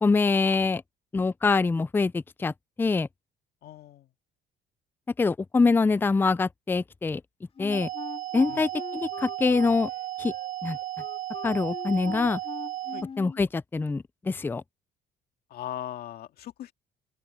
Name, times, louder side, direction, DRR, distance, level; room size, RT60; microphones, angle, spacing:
voice 1, 0.0-0.8 1.1-2.5 2.8-3.1 5.2-7.2 7.6-7.9 8.3-9.9 10.2-10.3 10.6-10.8 11.4-12.4 13.2-14.6, left 4 dB, 10° left, 0.4 m, -24 dB
voice 2, 3.6-4.1 8.4-8.7 12.9-13.1 15.5-16.7, left 11 dB, 65° left, 2.2 m, -39 dB
Wind instrument woodwind instrument, 7.6-13.4, left 6 dB, 35° left, 2.8 m, -42 dB
sound 1, 7.7-13.0, right 14 dB, 50° right, 0.5 m, -35 dB
open air
cardioid pair, 110°, 17 cm